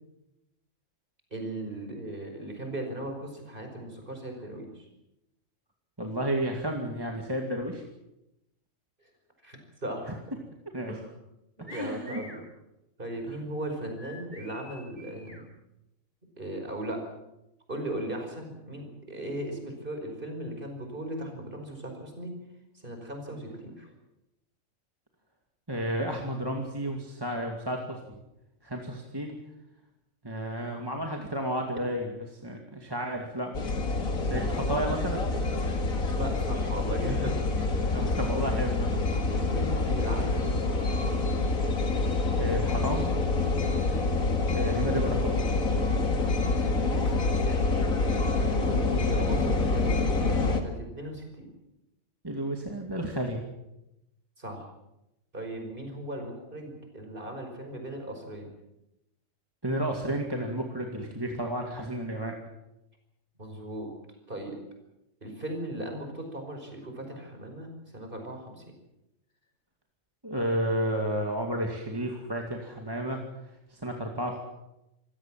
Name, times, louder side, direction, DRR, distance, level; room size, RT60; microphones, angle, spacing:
voice 1, 1.3-4.9 9.0-9.1 9.4-10.4 10.9-11.1 11.6-12.4 13.0-15.4 16.4-17.0 17.7-22.4 22.7-23.9 36.2-37.4 39.4-40.9 46.2-46.3 46.9-50.2 50.5-51.5 54.4-54.6 55.3-58.5 63.4-63.9 64.3-64.6 65.2-68.7, right 1 dB, 40° right, 4 dB, 5.4 m, -38 dB
voice 2, 6.0-7.8 10.7-11.0 11.7-12.2 25.7-28.0 28.6-29.4 30.2-33.8 34.3-35.3 37.9-39.0 42.3-43.1 44.5-45.4 52.2-53.4 59.6-62.3 70.2-73.2 73.7-74.4, right 1 dB, 15° right, 1 dB, 2.3 m, -32 dB
sound 1, 11.7-12.4 14.0-15.4, left 1 dB, 20° left, 4.4 m, -47 dB
sound 2, 33.5-50.6, left 3 dB, 80° left, 2.6 m, -27 dB
26.0 x 16.5 x 7.5 m, 0.91 s
omnidirectional pair, 1.4 m